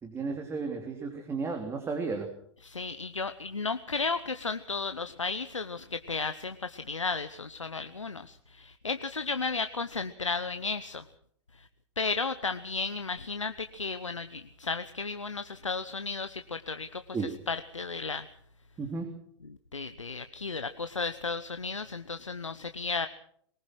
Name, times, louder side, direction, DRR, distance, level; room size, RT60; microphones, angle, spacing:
voice 1, 0.0-2.3 17.1-17.4 18.8-19.1, right 4 dB, 15° right, 4 dB, 3.2 m, -33 dB
voice 2, 2.6-11.0 12.0-18.3 19.7-23.1, left 4 dB, 85° left, 10 dB, 1.0 m, -34 dB
22.5 x 20.0 x 6.2 m, 0.64 s
figure-of-eight pair, 105°, 15 cm